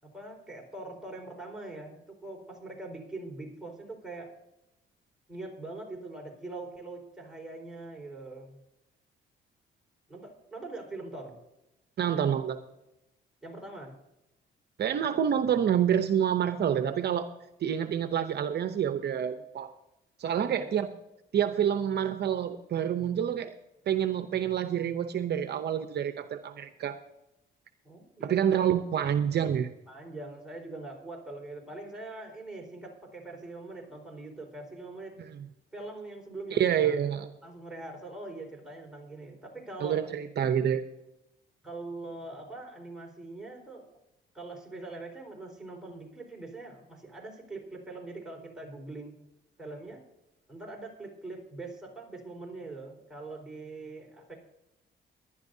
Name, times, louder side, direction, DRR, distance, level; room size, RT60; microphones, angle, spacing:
voice 1, 0.0-4.3 5.3-8.6 10.1-11.4 13.4-14.0 20.4-20.7 27.8-28.7 29.9-35.2 35.7-37.0 37.4-40.0 41.6-43.9 44.3-49.1 49.6-50.0 50.5-54.3, right 2 dB, 5° right, -2 dB, 4.5 m, -43 dB
voice 2, 12.0-12.6 14.8-17.3 17.6-19.7 20.2-20.9 21.3-23.5 23.9-27.0 28.2-29.7 36.5-37.3 39.8-40.8, right 9 dB, 55° right, 9 dB, 0.7 m, -27 dB
19.0 x 11.5 x 2.7 m, 0.90 s
cardioid pair, 90°, 20 cm